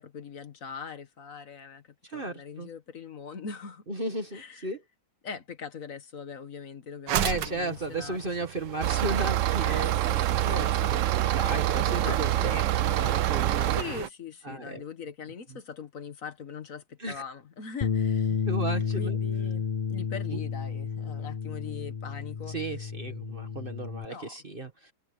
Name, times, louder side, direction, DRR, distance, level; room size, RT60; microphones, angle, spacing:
voice 1, 0.0-3.8 4.3-4.7 5.2-8.2 9.6-11.0 11.9-12.6 13.8-18.4 19.0-22.6 24.1-24.4, left 6 dB, 50° left, 1.7 m, -41 dB
voice 2, 2.0-2.7 3.9-4.8 7.2-9.9 10.4-13.8 14.4-14.8 15.5-15.6 17.0-17.2 18.4-19.2 20.3-20.4 22.5-24.9, right 2 dB, 30° right, 1.9 m, -35 dB
sound 1, 7.1-14.1, right 11 dB, 85° right, 1.5 m, -36 dB
sound 2, 8.8-13.8, right 13 dB, 65° right, 0.8 m, -26 dB
Bass guitar, 17.8-24.1, left 6 dB, 35° left, 0.7 m, -31 dB
omnidirectional pair, 1.8 m